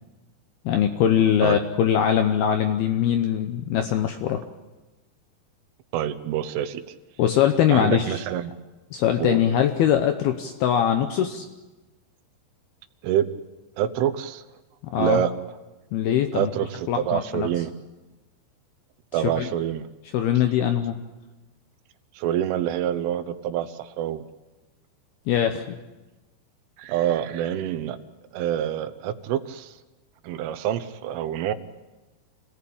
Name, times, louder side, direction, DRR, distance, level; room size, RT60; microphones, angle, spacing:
voice 1, 0.7-4.4 7.2-8.2 8.9-11.5 14.9-15.2 15.9-16.5 16.9-17.5 19.2-19.5 20.1-21.0 25.3-25.8, left 9 dB, 75° left, 7 dB, 2.3 m, -22 dB
voice 2, 5.9-6.8 7.7-8.5 9.2-9.4 13.0-13.3 13.8-14.4 15.0-15.3 16.3-17.7 19.1-19.9 22.2-24.2 26.8-28.0 28.3-29.8 30.2-31.5, right 10 dB, 85° right, 12 dB, 3.5 m, -26 dB
26.0 x 17.5 x 8.7 m, 1.1 s
omnidirectional pair, 5.6 m